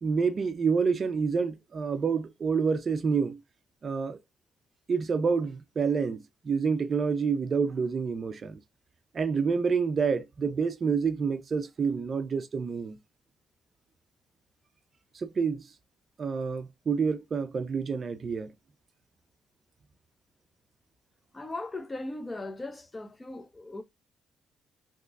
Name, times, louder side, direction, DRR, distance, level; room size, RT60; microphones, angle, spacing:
voice 1, 0.0-3.4 3.8-4.2 4.9-8.6 9.1-13.0 15.1-15.6 16.2-18.5, right 5 dB, 45° right, 0.4 m, -28 dB
voice 2, 21.3-23.8, left 2 dB, 20° left, 0.7 m, -38 dB
3.6 x 2.9 x 2.4 m
cardioid pair, 90°, 0 cm